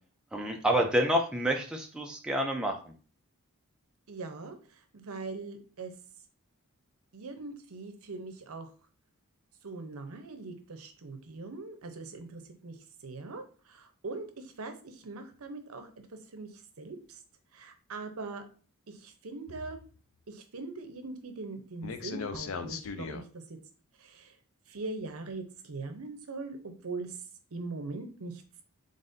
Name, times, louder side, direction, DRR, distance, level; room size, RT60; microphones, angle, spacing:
voice 1, 0.3-2.9, right 1 dB, 5° right, 1 dB, 0.4 m, -28 dB
voice 2, 4.1-5.9 7.1-8.7 9.6-12.8 13.0-15.9 16.3-16.5 16.8-17.2 17.5-18.4 18.9-19.8 20.3-23.4 24.0-24.3 24.7-27.2 27.5-28.4, right 3 dB, 75° right, 7 dB, 0.7 m, -41 dB
sound 1, 19.5-20.0 21.8-23.2, left 5 dB, 65° left, 0.4 m, -38 dB
4.0 x 3.7 x 2.6 m, 0.39 s
head